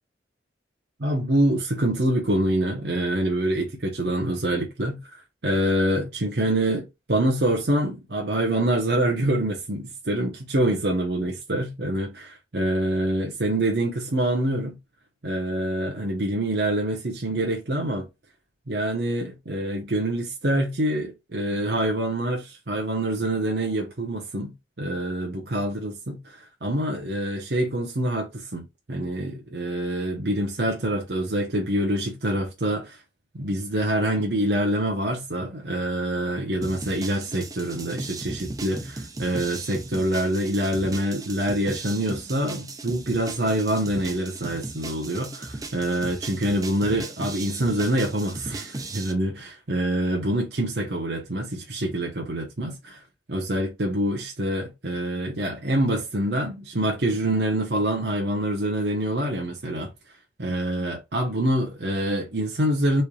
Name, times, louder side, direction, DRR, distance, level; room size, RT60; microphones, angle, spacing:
voice 1, 1.0-5.0 5.4-14.8 15.2-18.1 18.7-28.6 28.9-33.0 33.4-53.0 53.3-59.9 60.4-63.0, right 1 dB, 70° right, 0.9 m, -26 dB
sound 1, 36.6-49.1, right 2 dB, 20° right, 0.5 m, -37 dB
4.3 x 3.2 x 2.4 m
head